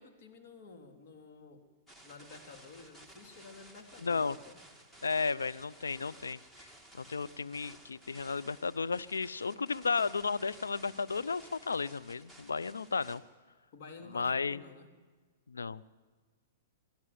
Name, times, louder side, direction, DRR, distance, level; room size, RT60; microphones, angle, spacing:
voice 1, 0.0-1.7 2.0-4.6 13.7-14.9, left 4 dB, 55° left, 4 dB, 3.1 m, -52 dB
sound 1, 1.9-13.2, right 1 dB, 10° left, 2.6 m, -56 dB
voice 2, 4.0-4.4 5.0-6.4 7.0-13.2 14.1-14.6 15.5-15.8, left 4 dB, 90° left, 14 dB, 0.5 m, -33 dB
23.5 x 13.5 x 9.5 m, 1.5 s
hypercardioid pair, 115°, 0 cm